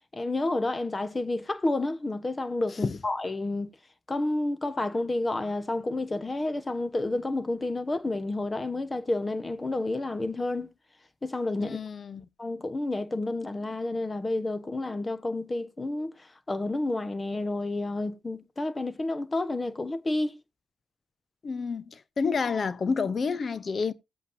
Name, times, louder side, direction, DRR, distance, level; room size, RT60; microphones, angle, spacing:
voice 1, 0.1-3.7 4.1-10.7 11.2-11.8 12.4-20.4, left 2 dB, 30° left, 1.2 m, -30 dB
voice 2, 11.6-12.3 21.4-23.9, left 5 dB, 50° left, 0.7 m, -29 dB
16.5 x 8.2 x 2.7 m
supercardioid pair, 55°, 0 cm